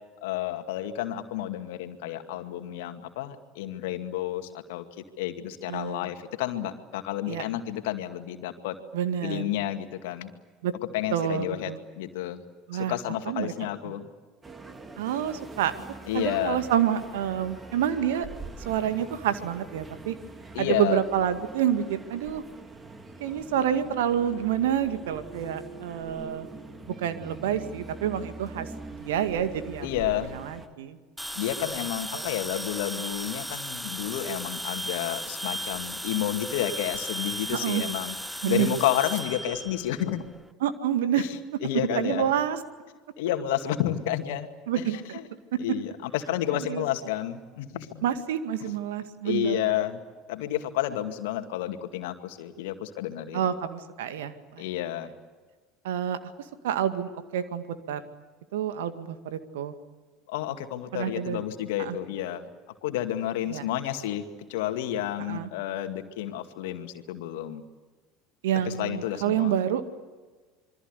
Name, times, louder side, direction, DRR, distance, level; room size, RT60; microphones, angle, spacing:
voice 1, 0.2-4.9 5.2-8.8 9.2-10.3 10.9-12.4 12.7-14.1 16.1-16.6 20.5-21.0 29.8-30.3 31.4-38.2 38.5-40.2 41.2-41.3 41.6-42.3 43.2-44.5 44.8-44.9 45.6-48.0 48.6-48.7 49.2-50.0 50.3-53.5 54.6-55.1 60.3-62.5 62.8-64.2 64.5-67.6 68.6-69.5, left 12 dB, 65° left, 7 dB, 2.2 m, -30 dB
voice 2, 5.7-6.1 7.3-7.4 8.9-9.5 10.6-10.7 11.1-11.8 12.7-12.9 13.3-13.5 13.8-13.9 15.0-15.7 16.1-18.3 18.6-20.2 20.6-22.4 23.2-26.5 27.0-28.7 29.0-30.1 30.3-31.0 32.1-32.3 37.5-37.8 38.4-38.7 40.6-41.2 42.0-42.6 44.7-45.2 46.5-46.8 48.0-49.6 53.3-54.6 55.8-56.2 56.6-58.0 58.5-59.7 60.9-61.4 61.8-62.0 63.5-63.6 65.3-65.5 68.4-69.8, right 10 dB, 70° right, 10 dB, 2.1 m, -28 dB
sound 1, 14.4-30.7, right 3 dB, 20° right, 2.8 m, -43 dB
sound 2, 31.2-40.4, equal, ahead, 0.8 m, -35 dB
27.0 x 24.0 x 8.3 m, 1.3 s
figure-of-eight pair, 70°, 0 cm